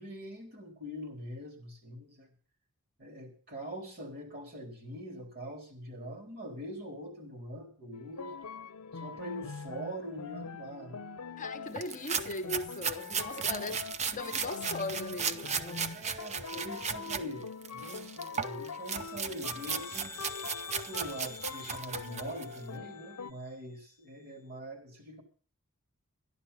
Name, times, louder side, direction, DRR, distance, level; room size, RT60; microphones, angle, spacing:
voice 1, 0.0-2.3 3.0-8.4 8.9-11.1 13.2-13.8 15.9-20.2 20.9-25.2, equal, 45° right, 3.7 m, -43 dB
sound 1, 7.9-23.3, left 5 dB, 80° left, 0.7 m, -44 dB
voice 2, 11.4-13.8 14.1-16.1, left 3 dB, 35° left, 1.0 m, -39 dB
sound 2, 11.8-17.2 17.6-22.6, right 6 dB, 30° right, 0.6 m, -36 dB
sound 3, 18.8-23.3, left 5 dB, 10° left, 0.7 m, -49 dB
12.5 x 11.0 x 5.6 m
head